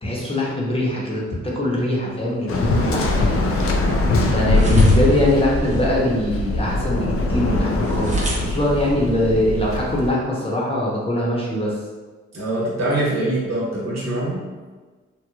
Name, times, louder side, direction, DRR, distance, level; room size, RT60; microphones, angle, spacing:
voice 1, 0.0-3.5 4.3-11.8, left 1 dB, 20° left, -4 dB, 0.9 m, -22 dB
sound 1, 2.1-10.1, right 1 dB, 25° right, 0.8 m, -34 dB
Waves surf, 2.5-10.1, left 2 dB, 50° left, 0.5 m, -21 dB
voice 2, 12.3-14.5, right 1 dB, 60° right, -5 dB, 1.2 m, -24 dB
3.0 x 2.2 x 2.3 m, 1.4 s
supercardioid pair, 50°, 30 cm